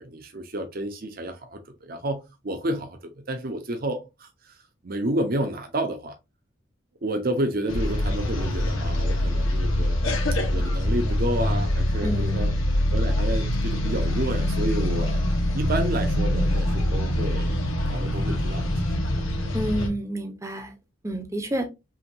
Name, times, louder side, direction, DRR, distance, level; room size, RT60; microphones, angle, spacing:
voice 1, 0.0-4.6 4.8-6.2 7.0-10.0 10.4-12.5 12.9-17.6 17.9-18.7, right 1 dB, 45° right, 0.7 m, -30 dB
sound 1, 7.7-19.9, left 1 dB, 90° left, 1.3 m, -24 dB
voice 2, 12.0-12.6 19.5-20.7 21.0-21.7, right 1 dB, 15° right, 0.7 m, -29 dB
5.7 x 2.8 x 2.6 m
head